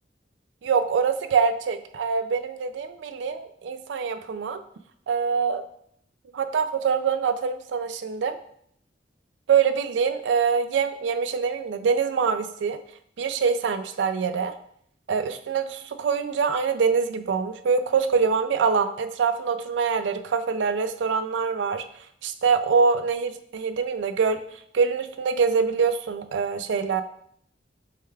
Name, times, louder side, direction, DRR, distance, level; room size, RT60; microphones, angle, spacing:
voice 1, 0.6-4.6 5.1-5.6 6.3-8.4 9.5-12.8 13.2-14.5 15.1-21.8 22.2-24.4 24.7-27.0, right 5 dB, 85° right, 10 dB, 0.4 m, -24 dB
6.4 x 2.3 x 3.3 m, 0.69 s
head